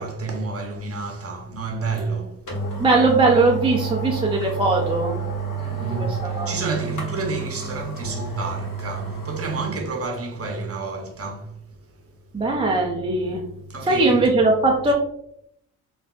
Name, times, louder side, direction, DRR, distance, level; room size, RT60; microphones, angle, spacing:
voice 1, 0.0-2.4 5.6-11.5 13.7-14.2, right 4 dB, 35° right, 0.8 m, -30 dB
sound 1, 2.0-2.1 2.5-9.7 10.1-10.2, right 4 dB, 45° left, 1.3 m, -30 dB
voice 2, 2.8-5.2 6.0-6.1 6.3-6.5 12.3-13.4 13.9-14.9, right 3 dB, 15° right, 0.4 m, -19 dB
3.4 x 2.4 x 2.3 m
supercardioid pair, 50°, 43 cm